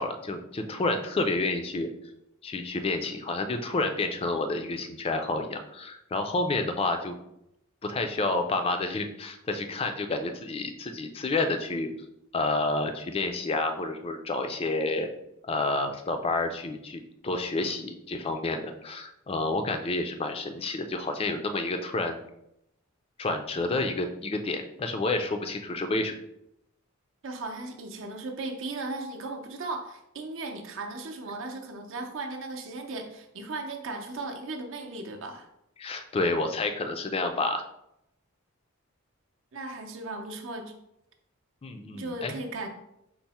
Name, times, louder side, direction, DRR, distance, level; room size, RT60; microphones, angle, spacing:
voice 1, 0.0-1.9 2.4-7.2 7.8-11.9 12.3-15.1 15.4-22.2 23.2-26.2 35.8-37.6 41.6-42.3, left 2 dB, 25° left, 6 dB, 0.3 m, -29 dB
voice 2, 27.2-35.5 39.5-40.7 41.9-42.7, right 2 dB, 65° right, 4 dB, 0.6 m, -36 dB
4.5 x 2.0 x 4.1 m, 0.81 s
head